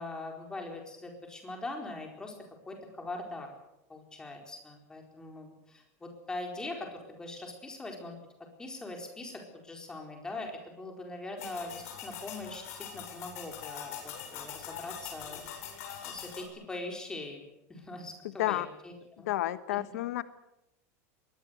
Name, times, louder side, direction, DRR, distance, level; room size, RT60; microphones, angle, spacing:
voice 1, 0.0-2.3 2.7-3.5 3.9-8.2 8.6-15.4 16.0-17.4 17.7-19.3 19.7-20.0, left 2 dB, 10° left, 2 dB, 4.4 m, -42 dB
sound 1, 11.4-16.5, left 9 dB, 70° left, 7.8 m, -43 dB
voice 2, 19.3-20.2, left 15 dB, 90° left, 13 dB, 1.3 m, -30 dB
23.0 x 18.5 x 8.1 m, 0.86 s
supercardioid pair, 170°, 8 cm